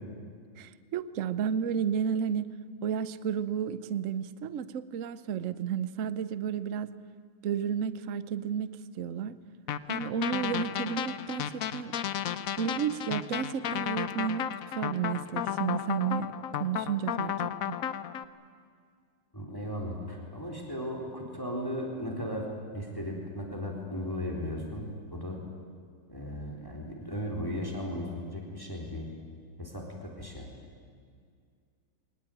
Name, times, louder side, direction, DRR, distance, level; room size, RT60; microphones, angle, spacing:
voice 1, 0.6-2.5 2.8-6.9 7.4-9.4 9.9-11.9 12.6-14.5 14.8-16.3 16.6-17.8, right 8 dB, 80° right, 15 dB, 0.7 m, -32 dB
sound 1, 9.7-18.2, left 10 dB, 75° left, 0.7 m, -33 dB
voice 2, 19.3-22.5 22.7-25.4 26.1-29.1 29.6-30.5, equal, 10° left, 0 dB, 3.6 m, -36 dB
22.5 x 19.0 x 9.1 m, 2.1 s
omnidirectional pair, 2.4 m